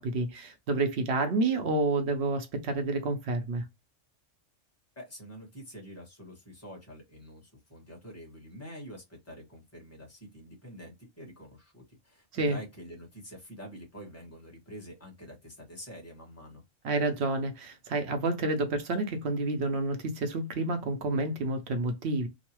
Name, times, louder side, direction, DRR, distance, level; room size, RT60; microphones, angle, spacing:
voice 1, 0.0-3.6 12.3-12.6 16.8-22.3, right 2 dB, 65° right, 0.8 m, -29 dB
voice 2, 4.9-16.6, equal, 10° left, 1.1 m, -47 dB
3.0 x 2.0 x 2.9 m
omnidirectional pair, 1.3 m